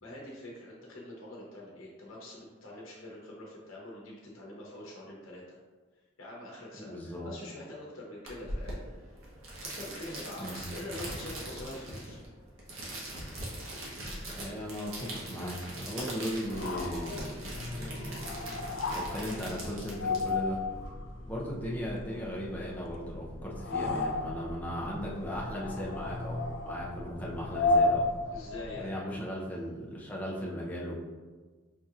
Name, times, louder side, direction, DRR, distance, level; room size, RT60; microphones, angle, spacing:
voice 1, 0.0-5.6 6.2-9.0 9.6-12.2 28.3-29.3, left 1 dB, 80° left, -3 dB, 0.8 m, -45 dB
voice 2, 6.8-7.3 10.4-10.6 14.3-20.6 21.3-28.1 28.8-30.9, equal, 10° left, -5 dB, 0.6 m, -37 dB
sound 1, 8.3-20.9, right 1 dB, 85° right, 1.0 m, -41 dB
sound 2, 16.4-29.0, left 2 dB, 65° left, 0.4 m, -34 dB
5.2 x 2.8 x 2.4 m, 1.4 s
head